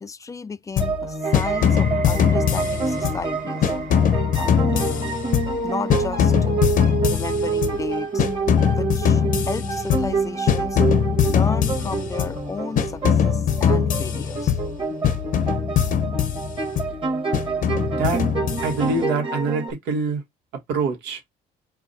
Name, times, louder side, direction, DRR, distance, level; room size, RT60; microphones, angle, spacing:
voice 1, 0.0-3.7 4.4-5.2 5.6-6.6 7.1-8.2 8.7-10.8 11.3-14.6, left 4 dB, 20° left, 0.4 m, -33 dB
sound 1, 0.8-1.1 1.3-3.3 3.6-5.7 5.9-7.9 8.2-10.2 10.5-12.4 12.8-14.8 15.0-16.9 17.3-19.0, left 8 dB, 55° left, 0.7 m, -22 dB
and......relax, 0.8-19.7, right 4 dB, 30° right, 1.4 m, -27 dB
sound 2, 1.2-12.3 12.7-13.2 13.9-14.0, right 5 dB, 60° right, 1.7 m, -43 dB
voice 2, 17.9-18.2 18.6-20.2 20.7-21.2, right 4 dB, 85° right, 1.5 m, -25 dB
4.7 x 2.5 x 4.0 m
cardioid pair, 110°, 17 cm